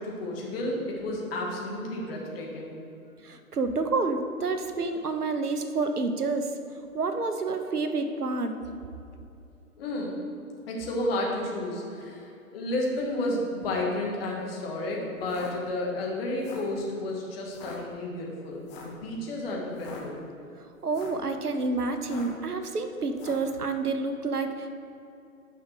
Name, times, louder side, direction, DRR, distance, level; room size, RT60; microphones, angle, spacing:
voice 1, 0.0-2.7 9.8-10.1 10.7-20.2, left 1 dB, 40° left, -2 dB, 2.1 m, -32 dB
voice 2, 3.2-6.5 6.9-8.5 20.8-24.8, right 3 dB, 85° right, 7 dB, 1.0 m, -29 dB
sound 1, 15.2-15.5 16.3-16.7 17.5-17.8 18.7-19.0 19.7-20.0 20.8-21.2 22.0-22.4 23.1-23.5, left 5 dB, 15° left, 0.8 m, -45 dB
9.5 x 5.7 x 5.2 m, 2.7 s
figure-of-eight pair, 130°, 44 cm